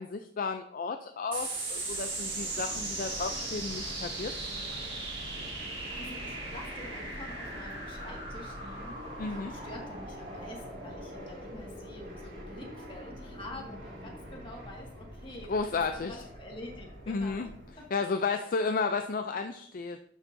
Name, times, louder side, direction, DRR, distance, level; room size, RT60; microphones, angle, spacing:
voice 1, 0.0-4.4 9.2-9.5 15.5-16.2 17.1-17.5 17.9-20.0, left 4 dB, 50° left, 7 dB, 0.4 m, -33 dB
sound 1, 1.3-16.1, right 2 dB, 30° right, 2.3 m, -40 dB
Fixed-wing aircraft airplane, 1.6-17.9, equal, 80° right, 3.4 m, -45 dB
voice 2, 2.5-2.9 5.5-15.6 15.9-17.5 17.8-17.9 18.3-18.5, left 1 dB, 30° left, -1 dB, 1.9 m, -47 dB
11.5 x 7.1 x 2.7 m, 0.66 s
head